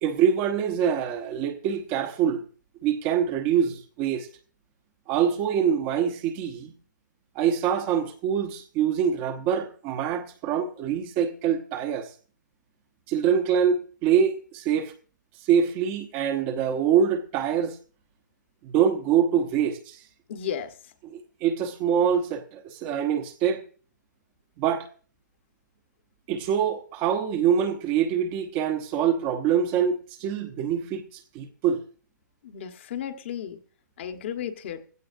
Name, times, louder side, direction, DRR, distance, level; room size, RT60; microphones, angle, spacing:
voice 1, 0.0-2.4 2.8-4.3 5.1-6.7 7.3-12.1 13.1-14.9 15.5-17.8 18.6-20.0 21.1-23.6 24.6-24.9 26.3-31.0 31.3-31.8, right 8 dB, 20° right, 1.0 m, -25 dB
voice 2, 20.3-20.9 32.4-33.6 34.0-34.8, left 9 dB, 40° left, 1.3 m, -34 dB
16.0 x 15.5 x 2.6 m
hypercardioid pair, 165°, 10 cm